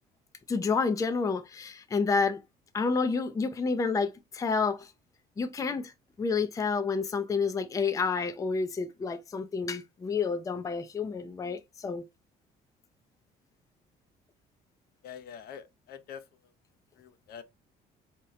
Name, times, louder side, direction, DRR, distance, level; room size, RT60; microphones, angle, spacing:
voice 1, 0.5-2.4 2.7-4.9 5.4-5.9 6.2-12.0, left 4 dB, 20° left, 0.5 m, -29 dB
voice 2, 15.0-16.2 17.0-17.4, left 8 dB, 65° left, 0.7 m, -45 dB
3.7 x 2.9 x 3.1 m
cardioid pair, 110°, 17 cm